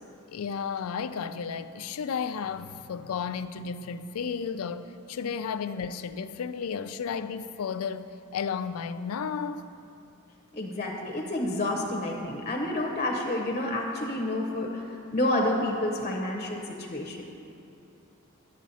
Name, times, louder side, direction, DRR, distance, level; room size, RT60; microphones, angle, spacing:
voice 1, 0.3-9.7, left 6 dB, 85° left, 0.4 m, -33 dB
voice 2, 10.5-14.9 15.1-17.2, left 1 dB, 30° left, 0.8 m, -29 dB
10.0 x 8.2 x 4.1 m
head